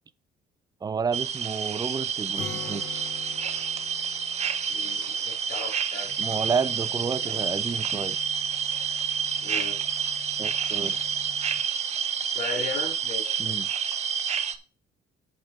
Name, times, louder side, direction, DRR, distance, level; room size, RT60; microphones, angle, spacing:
voice 1, 0.8-3.0 6.2-8.2 10.4-11.0 13.4-13.7, right 5 dB, 25° right, 0.4 m, -30 dB
sound 1, 1.1-14.5, right 7 dB, 40° right, 0.9 m, -29 dB
Acoustic guitar, 2.4-6.1, left 7 dB, 60° left, 1.9 m, -43 dB
voice 2, 4.7-6.1 7.2-7.5 9.4-9.8 12.2-13.4, left 3 dB, 75° left, 3.9 m, -36 dB
sound 2, 6.0-11.6, left 6 dB, ahead, 2.6 m, -51 dB
8.1 x 5.1 x 5.8 m
cardioid pair, 110°, 17 cm